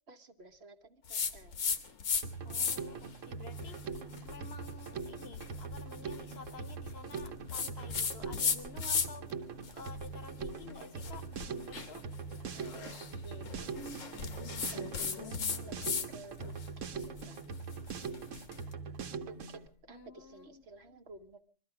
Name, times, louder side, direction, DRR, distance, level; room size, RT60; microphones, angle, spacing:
voice 1, 0.1-1.5 12.5-13.0 13.2-17.4 19.2-21.4, right 2 dB, 60° right, 1.2 m, -52 dB
sound 1, 1.1-2.2 2.5-3.0 3.5-9.3 9.6-16.1 16.4-18.6, left 6 dB, 85° left, 1.5 m, -37 dB
Drum kit, 2.2-19.7, right 5 dB, 80° right, 1.3 m, -42 dB
voice 2, 2.4-3.9 4.2-9.3 9.7-12.1 19.9-20.6, left 5 dB, 55° left, 1.1 m, -51 dB
21.5 x 13.5 x 4.8 m
omnidirectional pair, 1.3 m